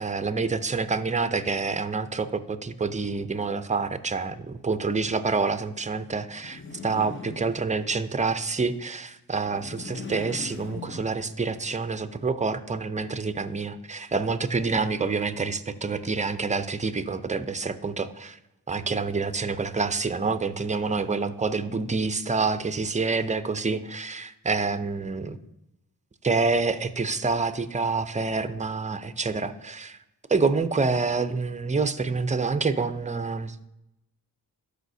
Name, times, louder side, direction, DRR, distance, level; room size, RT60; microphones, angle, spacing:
voice 1, 0.0-18.4 18.7-25.4 26.2-30.0 30.3-33.7, right 4 dB, 20° right, 11 dB, 0.5 m, -27 dB
sound 1, 6.3-8.1 9.4-11.6, left 4 dB, 30° left, 0.7 m, -41 dB
13.0 x 5.0 x 2.7 m, 0.90 s
cardioid pair, 60°, 40 cm